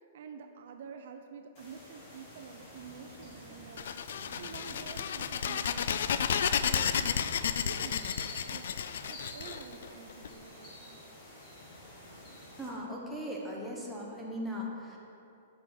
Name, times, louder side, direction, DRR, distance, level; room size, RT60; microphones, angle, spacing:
voice 1, 0.1-7.3 7.6-8.8 9.1-11.0, right 6 dB, 55° right, 6 dB, 0.5 m, -49 dB
sound 1, 1.5-12.7, left 1 dB, 30° left, 1.7 m, -50 dB
sound 2, 3.8-10.3, left 8 dB, 65° left, 0.3 m, -32 dB
voice 2, 12.6-15.0, equal, ahead, -4 dB, 0.9 m, -38 dB
9.2 x 6.2 x 3.8 m, 2.8 s
hypercardioid pair, 170°, 0 cm